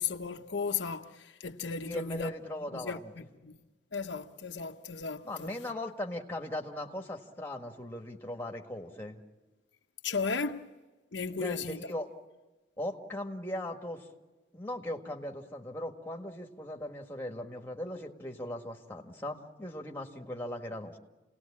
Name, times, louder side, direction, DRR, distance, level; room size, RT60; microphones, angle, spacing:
voice 1, 0.0-2.3 2.7-3.6 3.9-5.5 10.0-10.6 11.1-11.8, left 5 dB, 80° left, 1.0 m, -35 dB
voice 2, 1.8-3.1 5.2-9.2 11.3-12.1 12.8-14.1 14.5-21.0, left 1 dB, 10° left, 1.7 m, -39 dB
28.5 x 19.0 x 8.7 m
head